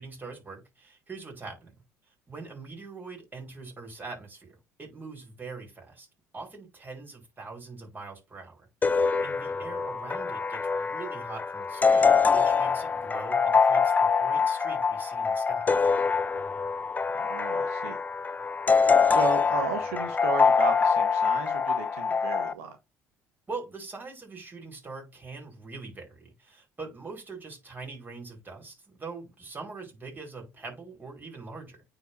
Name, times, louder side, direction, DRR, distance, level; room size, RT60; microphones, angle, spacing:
voice 1, 0.0-1.7 2.3-6.1 6.3-15.7 23.5-31.8, right 4 dB, 25° right, 4.8 m, -43 dB
sound 1, 8.8-22.5, left 5 dB, 25° left, 0.5 m, -24 dB
voice 2, 17.1-18.0 19.1-22.8, right 7 dB, 85° right, 1.1 m, -35 dB
9.2 x 4.5 x 2.7 m
hypercardioid pair, 65°, 7 cm